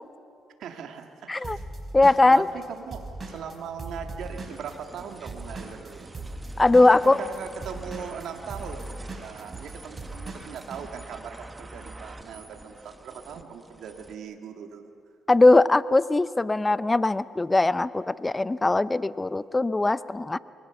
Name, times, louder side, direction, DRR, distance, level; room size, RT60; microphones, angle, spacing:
voice 1, 0.6-1.6 2.0-6.1 6.9-14.9, right 7 dB, 75° right, 4 dB, 1.8 m, -40 dB
Drum kit / Drum, 1.4-5.0 5.3-10.8, right 2 dB, 35° right, 5.4 m, -39 dB
voice 2, 1.9-2.5 6.6-7.2 15.3-20.4, left 2 dB, 20° left, 16 dB, 0.6 m, -20 dB
sound 1, 4.2-14.1, right 2 dB, 20° right, 1.3 m, -46 dB
29.0 x 22.5 x 6.9 m, 2.5 s
cardioid pair, 90°, 0 cm